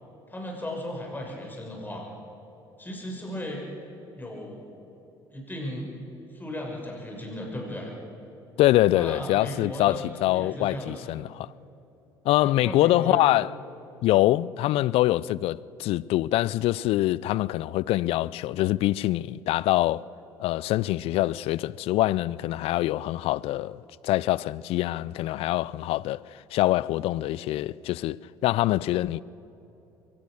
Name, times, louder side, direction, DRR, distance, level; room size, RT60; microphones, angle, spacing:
voice 1, 0.3-2.1 2.8-3.6 4.1-4.6 5.3-5.9 6.3-7.9 8.9-11.1 12.4-13.2, left 1 dB, 15° left, 6.2 m, -36 dB
voice 2, 8.6-11.5 12.2-13.5 14.0-20.0 20.4-28.2 28.4-29.2, left 16 dB, 60° left, 0.4 m, -24 dB
23.0 x 18.0 x 6.4 m
hypercardioid pair, 60°, 11 cm